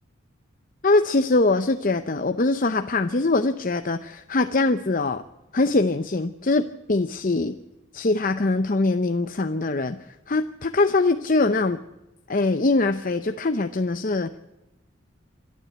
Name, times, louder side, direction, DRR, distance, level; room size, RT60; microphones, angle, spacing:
voice 1, 0.8-5.2 5.5-7.6 7.9-10.0 10.3-11.8 12.3-14.3, left 2 dB, 40° left, 9 dB, 0.7 m, -22 dB
26.5 x 12.0 x 8.1 m, 0.99 s
head